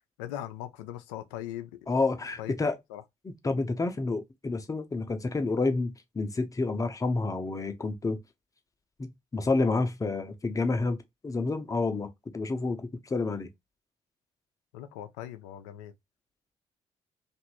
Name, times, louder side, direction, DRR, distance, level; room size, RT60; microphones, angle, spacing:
voice 1, 0.2-1.8 2.4-2.5 2.9-3.0 14.7-15.9, left 12 dB, 70° left, 0.4 m, -39 dB
voice 2, 1.9-2.8 3.2-8.2 9.0-11.0 11.2-13.5, left 3 dB, 20° left, 0.7 m, -29 dB
2.9 x 2.5 x 2.9 m
figure-of-eight pair, 40°, 16 cm